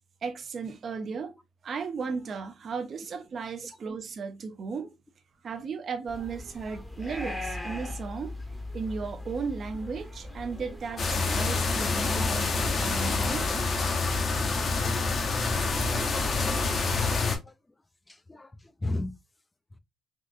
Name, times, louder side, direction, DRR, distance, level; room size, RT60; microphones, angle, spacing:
voice 1, 0.2-1.3 1.6-4.9 5.4-8.4 8.7-13.6, right 5 dB, 50° right, 0.6 m, -35 dB
sound 1, 6.1-13.7, left 1 dB, ahead, 0.8 m, -40 dB
sound 2, 11.0-17.4, left 3 dB, 50° left, 0.8 m, -27 dB
voice 2, 11.4-11.7 16.9-17.5 18.1-19.1, left 2 dB, 15° left, 0.4 m, -37 dB
3.7 x 2.5 x 2.5 m
cardioid pair, 90°, 0 cm